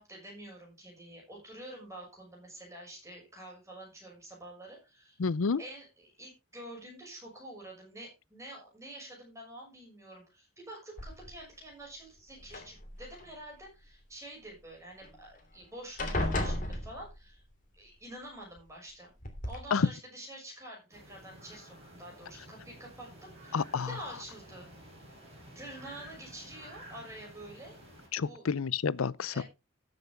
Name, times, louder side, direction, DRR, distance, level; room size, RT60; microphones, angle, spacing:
voice 1, 0.0-5.2 5.6-17.4 17.7-19.1 19.4-23.6 23.9-24.7 25.5-27.8 28.2-28.5 29.3-29.4, right 1 dB, 15° right, 6.2 m, -48 dB
voice 2, 5.2-5.6 19.7-19.9 23.5-23.9 28.1-29.4, left 5 dB, 90° left, 0.6 m, -29 dB
sound 1, 11.0-11.5 12.4-13.2 15.0-15.1 15.4-15.6 16.0-17.4 18.6-18.7 19.2-19.6, left 1 dB, 40° left, 3.0 m, -34 dB
sound 2, 20.9-28.1, equal, 30° right, 6.3 m, -52 dB
14.5 x 7.9 x 3.5 m
head